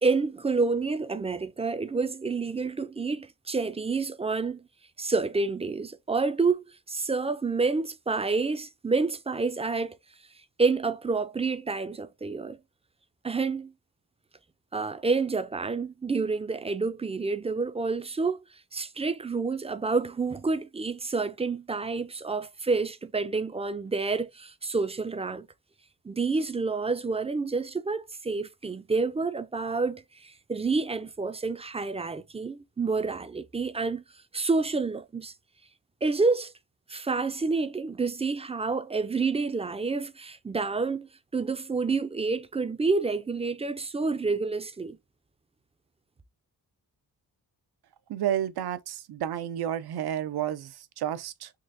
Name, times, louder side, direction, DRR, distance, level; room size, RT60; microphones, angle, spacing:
voice 1, 0.0-4.6 5.0-10.0 10.6-12.6 13.2-13.7 14.7-18.4 18.7-25.5 26.0-34.0 34.3-35.3 36.0-36.5 36.9-45.0, right 4 dB, 20° right, 0.3 m, -28 dB
voice 2, 48.1-51.5, right 10 dB, 90° right, 0.5 m, -31 dB
3.7 x 3.2 x 2.5 m
wide cardioid pair, 95°, 37 cm